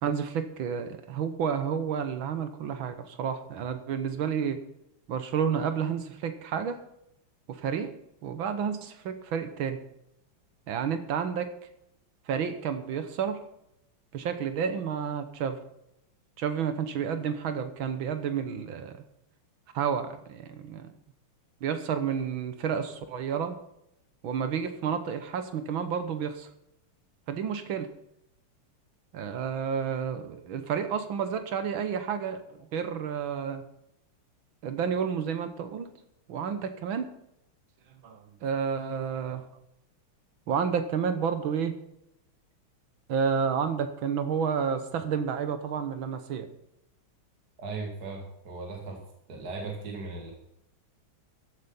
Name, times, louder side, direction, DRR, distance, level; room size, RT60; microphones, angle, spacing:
voice 1, 0.0-4.6 5.1-6.8 7.5-8.0 8.2-9.8 10.7-11.5 12.3-13.4 14.1-15.6 16.4-19.0 19.7-20.9 21.6-23.6 24.2-26.5 27.3-27.9 29.1-33.6 34.6-35.9 36.3-37.1 38.0-39.5 40.5-41.7 43.1-46.5, right 7 dB, 70° right, 9 dB, 1.8 m, -30 dB
voice 2, 47.6-49.0 49.3-50.3, right 3 dB, 50° right, 1 dB, 2.3 m, -37 dB
14.5 x 8.1 x 5.6 m, 0.82 s
omnidirectional pair, 2.3 m